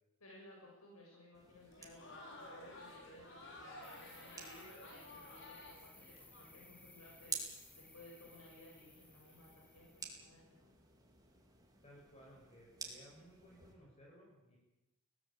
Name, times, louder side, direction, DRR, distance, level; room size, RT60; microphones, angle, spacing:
voice 1, 0.2-7.4 7.8-10.7, left 1 dB, 85° left, -2 dB, 7.6 m, -59 dB
sound 1, 1.3-13.7, right 5 dB, 20° right, 4.5 m, -53 dB
Crowd, 1.6-6.5, left 1 dB, 60° left, 6.4 m, -53 dB
sound 2, 3.8-10.1, left 2 dB, 5° left, 1.4 m, -61 dB
voice 2, 11.8-14.6, equal, 30° left, -2 dB, 6.8 m, -60 dB
23.5 x 18.0 x 8.8 m, 1.0 s
head